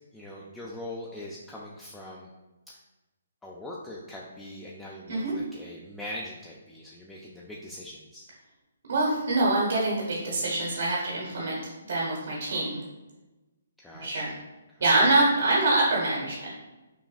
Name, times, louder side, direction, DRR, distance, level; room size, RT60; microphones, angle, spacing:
voice 1, 0.1-2.3 2.7-2.8 3.4-8.3 10.3-10.5 13.8-14.4 14.7-14.8, left 1 dB, 5° left, -5 dB, 0.3 m, -42 dB
voice 2, 8.9-12.8 13.9-14.4 14.8-16.6, right 2 dB, 75° right, -4 dB, 1.0 m, -25 dB
5.7 x 2.2 x 2.3 m, 1.1 s
hypercardioid pair, 155°, 0 cm